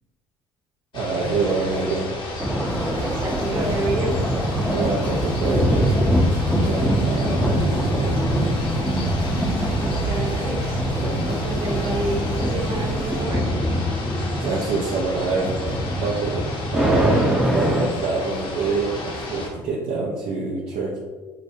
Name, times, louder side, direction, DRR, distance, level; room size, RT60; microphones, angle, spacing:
sound 1, 0.9-19.5, left 2 dB, 50° left, 0.8 m, -33 dB
voice 1, 0.9-2.1 4.7-5.9 6.5-8.7 11.0-11.3 14.4-21.0, right 3 dB, 65° right, -4 dB, 0.6 m, -26 dB
sound 2, 2.4-17.9, equal, 5° right, 0.6 m, -24 dB
sound 3, 2.6-13.2, right 4 dB, 90° right, 1.0 m, -34 dB
voice 2, 2.9-4.2 10.1-10.8 11.3-13.4, right 1 dB, 45° right, -1 dB, 1.1 m, -28 dB
4.9 x 2.0 x 2.7 m, 1.3 s
supercardioid pair, 75°, 11 cm